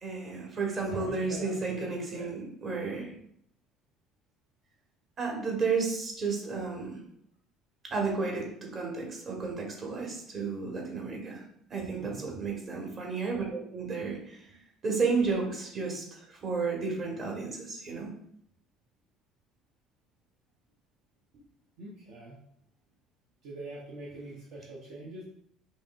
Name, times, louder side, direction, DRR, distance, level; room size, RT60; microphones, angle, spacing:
voice 1, 0.0-3.1 5.2-7.0 7.8-11.4 11.7-14.6 14.8-18.1, right 4 dB, 35° right, -1 dB, 1.3 m, -32 dB
voice 2, 0.9-2.3 12.0-12.3 21.8-22.4 23.4-25.2, right 2 dB, 55° right, -4 dB, 0.7 m, -43 dB
5.2 x 3.0 x 2.4 m, 0.71 s
figure-of-eight pair, 55°, 0 cm